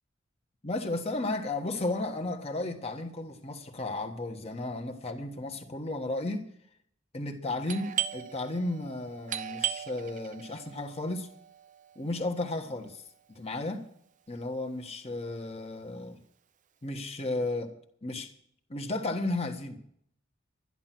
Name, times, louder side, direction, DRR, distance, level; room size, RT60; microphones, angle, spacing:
voice 1, 0.6-6.5 7.1-11.3 11.9-13.0 13.3-13.8 14.3-16.2 16.8-17.7 18.0-18.3 18.7-19.8, left 2 dB, 30° left, 1.4 m, -34 dB
Doorbell, 7.7-13.1, right 10 dB, 40° right, 0.7 m, -38 dB
12.5 x 11.0 x 6.0 m
head